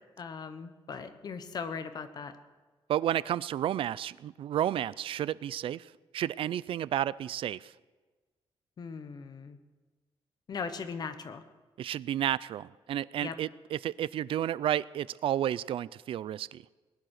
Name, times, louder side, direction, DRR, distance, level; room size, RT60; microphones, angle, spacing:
voice 1, 0.2-2.4 8.8-9.6 10.5-11.4 13.2-13.4, left 5 dB, 45° left, 10 dB, 1.1 m, -39 dB
voice 2, 2.9-7.7 11.8-16.6, right 11 dB, 65° right, 21 dB, 0.4 m, -31 dB
20.0 x 10.5 x 6.6 m, 1.3 s
wide cardioid pair, 155°, 10 cm